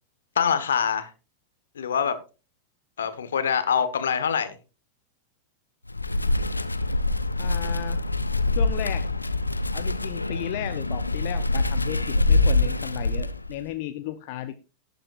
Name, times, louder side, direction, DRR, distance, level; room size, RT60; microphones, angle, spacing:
voice 1, 0.3-1.1 1.7-2.2 3.0-4.6, left 7 dB, 65° left, 1.4 m, -24 dB
Wind, 5.9-13.6, left 2 dB, 85° left, 0.7 m, -25 dB
voice 2, 7.4-8.0 8.5-9.1 9.7-14.6, left 14 dB, 45° left, 0.8 m, -34 dB
18.0 x 7.9 x 2.6 m
figure-of-eight pair, 90°, 0 cm